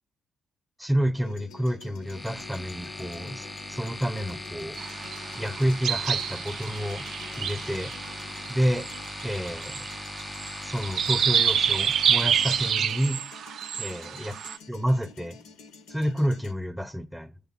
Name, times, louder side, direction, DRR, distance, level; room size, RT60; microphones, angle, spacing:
voice 1, 0.8-4.8 5.4-7.1 7.4-7.9 8.5-8.9 9.2-9.8 10.6-13.2 13.8-14.3 14.7-15.4 15.9-17.3, equal, ahead, 0.7 m, -29 dB
sound 1, 1.2-16.5, left 5 dB, 85° left, 0.7 m, -49 dB
sound 2, 2.0-12.7, left 2 dB, 15° left, 0.4 m, -39 dB
sound 3, 4.8-14.6, right 8 dB, 65° right, 0.4 m, -28 dB
7.1 x 3.5 x 6.0 m
supercardioid pair, 55°, 0 cm